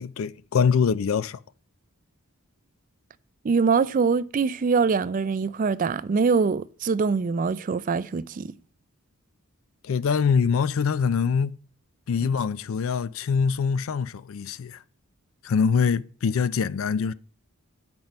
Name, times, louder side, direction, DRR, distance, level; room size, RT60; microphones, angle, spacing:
voice 1, 0.0-1.4 9.8-11.6 12.1-14.8 15.4-17.1, left 6 dB, 65° left, 0.4 m, -24 dB
voice 2, 3.4-8.5 12.2-12.3, right 5 dB, 35° right, 0.3 m, -23 dB
8.7 x 6.0 x 5.2 m
head